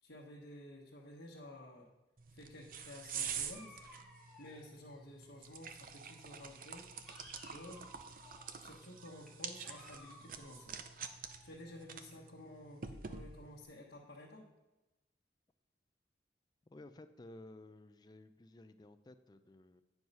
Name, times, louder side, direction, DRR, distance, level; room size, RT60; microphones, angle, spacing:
voice 1, 0.0-1.9 2.3-3.8 4.4-6.9 7.5-7.9 8.6-10.8 11.4-14.4, left 1 dB, 85° left, -4 dB, 1.2 m, -53 dB
sound 1, 2.2-13.6, right 7 dB, 50° right, 0.5 m, -47 dB
Dog, 3.4-5.8 6.1-12.0, left 1 dB, ahead, 1.2 m, -60 dB
voice 2, 16.7-19.8, left 2 dB, 25° left, 10 dB, 0.4 m, -55 dB
9.4 x 4.7 x 5.4 m, 1.1 s
head